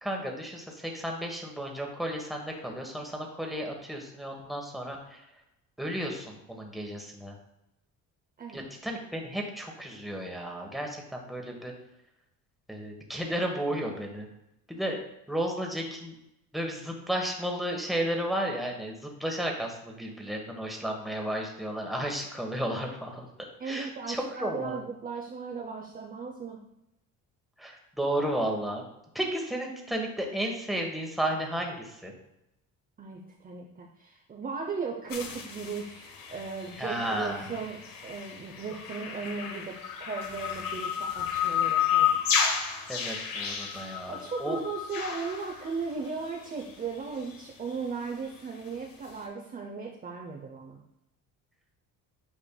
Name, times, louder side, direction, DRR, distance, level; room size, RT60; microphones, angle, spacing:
voice 1, 0.0-5.2 5.8-7.3 8.5-11.7 12.7-14.3 14.7-15.0 15.3-16.1 16.5-23.3 23.6-24.8 27.6-28.8 29.1-32.1 36.8-37.5 42.9-44.6, right 1 dB, ahead, 1 dB, 1.2 m, -33 dB
voice 2, 23.6-26.6 33.0-42.2 44.1-50.8, right 5 dB, 25° right, 0 dB, 0.6 m, -37 dB
sound 1, 35.1-46.3 46.6-46.7 47.0-47.1 47.3-47.4 47.7-47.8, left 8 dB, 65° left, 1.1 m, -32 dB
8.7 x 5.2 x 2.3 m, 0.86 s
cardioid pair, 115°, 36 cm